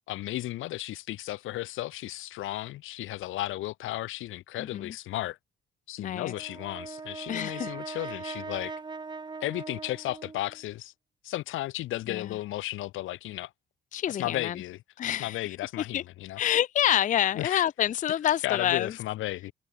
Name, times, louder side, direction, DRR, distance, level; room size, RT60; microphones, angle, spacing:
voice 1, 0.1-5.4 5.9-8.7 9.4-10.9 11.2-13.5 14.1-14.8 15.1-16.4 17.3-17.6 18.2-19.5, left 16 dB, 85° left, 1.0 m, -34 dB
voice 2, 4.6-4.9 6.0-6.3 7.3-8.0 12.1-12.3 13.9-14.6 15.0-16.0 16.4-18.9, left 11 dB, 40° left, 0.4 m, -28 dB
Brass instrument, 6.2-10.6, right 4 dB, 20° right, 0.8 m, -40 dB
cardioid pair, 90°, 20 cm